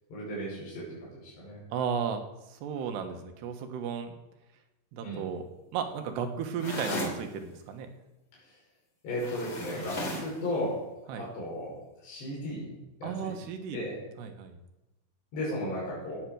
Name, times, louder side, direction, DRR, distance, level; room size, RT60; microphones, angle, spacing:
voice 1, 0.1-1.6 5.0-5.3 9.0-10.8 11.1-11.8 12.0-12.7 13.0-13.3 13.7-14.0 15.3-16.2, left 1 dB, 80° left, -6 dB, 7.6 m, -35 dB
voice 2, 1.7-2.2 2.5-4.1 4.9-5.5 5.7-7.9 9.7-9.9 11.1-11.3 13.0-13.8 14.2-14.6, right 7 dB, 75° right, 6 dB, 3.4 m, -34 dB
sound 1, 6.6-7.2 9.2-10.4, left 1 dB, 35° left, 3.5 m, -35 dB
17.5 x 9.4 x 6.3 m, 0.98 s
omnidirectional pair, 4.9 m